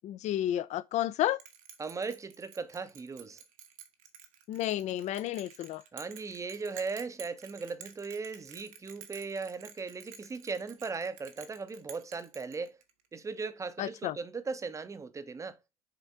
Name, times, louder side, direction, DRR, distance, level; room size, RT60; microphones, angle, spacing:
voice 1, 0.0-1.4 4.5-5.8 13.8-14.2, left 13 dB, 40° left, 0.6 m, -31 dB
Bell, 1.4-13.1, right 8 dB, 65° right, 1.2 m, -51 dB
voice 2, 1.8-3.4 5.9-12.8 13.1-15.6, right 4 dB, 15° right, 0.8 m, -38 dB
6.8 x 4.3 x 3.6 m
figure-of-eight pair, 65°, 19 cm